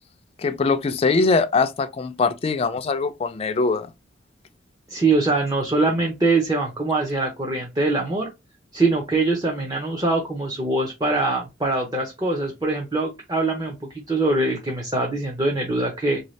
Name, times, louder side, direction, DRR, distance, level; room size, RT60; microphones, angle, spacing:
voice 1, 0.4-3.9, left 4 dB, 30° left, 0.3 m, -22 dB
voice 2, 4.9-8.3 8.7-16.2, right 2 dB, 20° right, 0.6 m, -23 dB
3.4 x 2.6 x 3.1 m
head